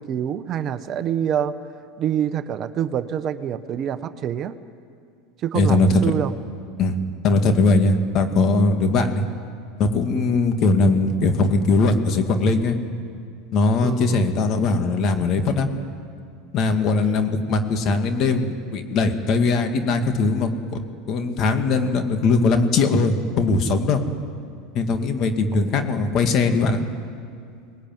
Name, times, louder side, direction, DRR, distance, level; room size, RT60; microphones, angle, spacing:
voice 1, 0.0-1.5 2.0-4.5 5.4-6.3 13.8-14.3 25.5-25.7, right 9 dB, 45° right, 11 dB, 1.0 m, -26 dB
voice 2, 5.5-6.0 6.8-6.9 7.2-9.2 9.8-12.8 13.5-15.7 16.5-20.8 21.1-24.0 24.7-26.8, left 3 dB, 50° left, 6 dB, 2.4 m, -20 dB
24.0 x 20.0 x 9.4 m, 2.3 s
supercardioid pair, 110°, 0 cm